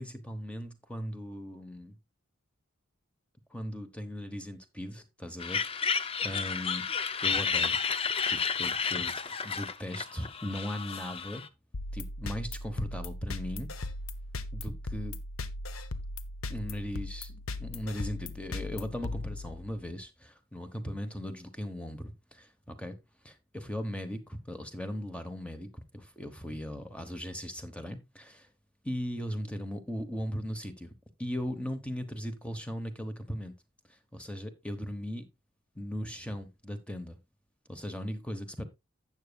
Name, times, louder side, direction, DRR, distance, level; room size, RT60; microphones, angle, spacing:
voice 1, 0.0-2.0 3.5-6.8 7.2-7.8 8.3-11.5 11.9-13.7 14.5-15.2 16.5-23.0 23.2-28.5 28.8-30.9 31.2-33.5 33.9-35.3 35.7-37.2 37.7-38.7, equal, 5° left, 1.0 m, -38 dB
sound 1, 5.4-11.5, left 6 dB, 25° left, 0.5 m, -31 dB
sound 2, 11.7-19.9, left 2 dB, 75° left, 0.8 m, -38 dB
12.0 x 8.2 x 2.3 m
head